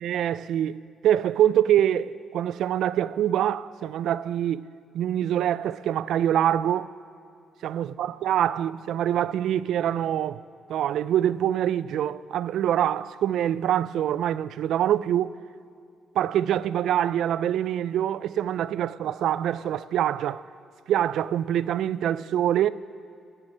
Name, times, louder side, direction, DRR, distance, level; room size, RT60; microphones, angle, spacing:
voice 1, 0.0-4.7 4.9-6.9 7.6-10.4 10.7-15.3 16.2-20.4 20.9-22.7, right 11 dB, 75° right, 0.3 m, -25 dB
20.0 x 7.9 x 5.4 m
cardioid pair, 90°, 0 cm